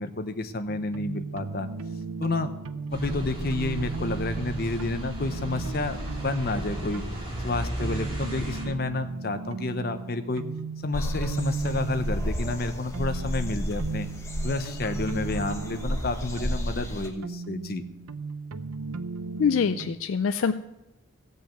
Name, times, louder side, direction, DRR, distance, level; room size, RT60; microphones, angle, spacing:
voice 1, 0.0-1.7 2.2-2.5 2.9-7.0 7.4-10.5 10.8-14.1 14.4-17.8, left 2 dB, 45° left, 8 dB, 0.8 m, -30 dB
sound 1, 0.7-19.9, right 4 dB, 90° right, 0.6 m, -37 dB
sound 2, 2.9-8.6, equal, 25° right, 3.1 m, -35 dB
sound 3, 10.9-17.1, equal, 15° left, 1.1 m, -32 dB
voice 2, 19.4-20.5, left 6 dB, 70° left, 10 dB, 0.4 m, -24 dB
15.5 x 5.4 x 7.6 m, 0.92 s
head